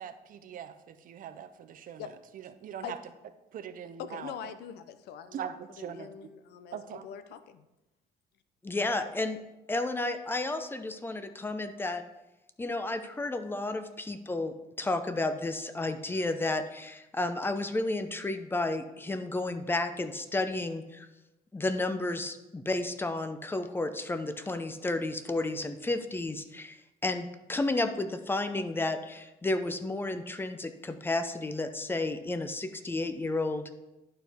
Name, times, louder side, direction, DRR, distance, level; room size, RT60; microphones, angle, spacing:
voice 1, 0.0-2.0 2.3-3.0 3.5-4.3 5.3-6.1 6.7-7.0, right 9 dB, 55° right, 11 dB, 0.6 m, -41 dB
voice 2, 4.0-7.7, left 8 dB, 75° left, 12 dB, 0.6 m, -43 dB
voice 3, 8.6-9.4 9.7-12.0 12.6-21.1 21.5-26.8 27.0-33.7, left 2 dB, 15° left, 9 dB, 0.6 m, -32 dB
11.0 x 4.6 x 3.5 m, 0.97 s
cardioid pair, 110°, 17 cm